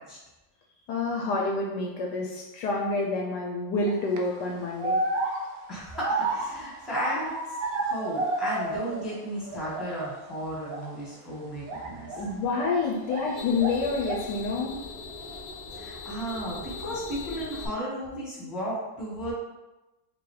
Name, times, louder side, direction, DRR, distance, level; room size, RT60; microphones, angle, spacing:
voice 1, 0.9-5.0 12.1-14.8, left 3 dB, 75° left, -1 dB, 1.1 m, -28 dB
sound 1, 3.9-4.2 4.8-9.2 9.4-10.2 10.6-10.9 11.6-13.3 13.6-14.4, right 2 dB, 70° right, 0.9 m, -31 dB
voice 2, 5.7-7.3 7.8-12.1 15.7-19.3, equal, ahead, -7 dB, 1.1 m, -34 dB
sound 2, 12.8-17.7, left 3 dB, 30° left, 1.0 m, -40 dB
5.3 x 2.7 x 3.2 m, 1.1 s
omnidirectional pair, 2.0 m